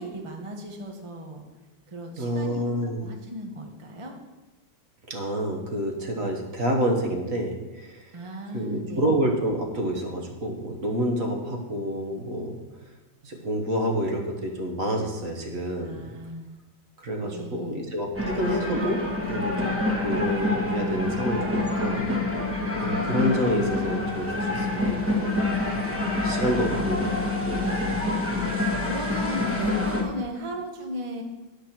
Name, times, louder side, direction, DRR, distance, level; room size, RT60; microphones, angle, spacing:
voice 1, 0.0-1.4 1.9-4.1 8.1-9.2 15.8-16.5 17.2-17.7 26.5-27.2 27.6-31.2, right 1 dB, 25° right, 2 dB, 0.7 m, -37 dB
voice 2, 2.2-3.0 5.1-8.2 8.5-12.6 13.2-16.1 17.0-19.0 19.3-19.7 20.0-22.4 22.8-25.8 26.1-27.1 27.4-27.7, equal, 50° right, 1 dB, 1.7 m, -28 dB
sound 1, 18.1-30.0, left 2 dB, 10° right, 1.1 m, -27 dB
10.5 x 5.9 x 6.0 m, 1.2 s
omnidirectional pair, 2.0 m